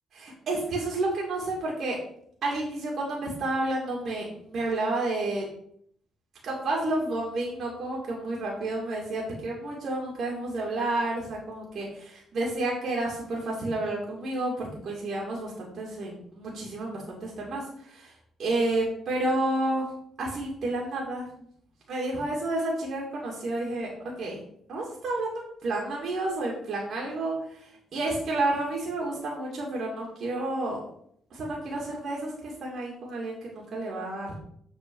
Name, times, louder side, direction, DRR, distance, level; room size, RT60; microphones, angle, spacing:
voice 1, 0.1-2.0 2.4-5.5 6.4-18.1 18.4-19.9 20.2-21.4 21.9-23.9 24.2-24.4 24.7-30.8 31.3-34.3, right 2 dB, 60° right, -3 dB, 2.4 m, -30 dB
7.6 x 4.6 x 4.8 m, 0.66 s
cardioid pair, 90°, 0 cm